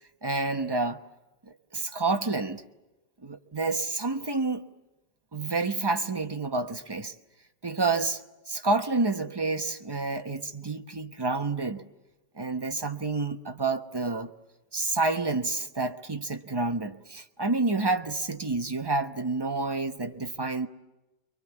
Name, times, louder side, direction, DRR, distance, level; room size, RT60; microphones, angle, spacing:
voice 1, 0.2-1.0 1.7-2.6 3.2-4.6 5.3-7.1 7.6-8.2 8.5-11.8 12.4-14.3 14.7-20.7, right 3 dB, 20° right, 0.6 m, -29 dB
30.0 x 23.5 x 7.2 m
omnidirectional pair, 2.0 m